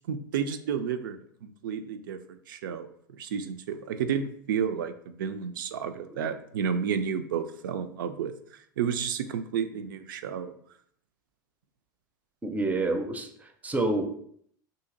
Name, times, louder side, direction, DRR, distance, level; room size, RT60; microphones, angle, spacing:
voice 1, 0.0-8.3 8.8-10.5, right 7 dB, 70° right, 9 dB, 0.4 m, -31 dB
voice 2, 12.4-14.1, right 2 dB, 15° right, 6 dB, 0.5 m, -28 dB
2.8 x 2.7 x 3.8 m, 0.65 s
hypercardioid pair, 85°, 11 cm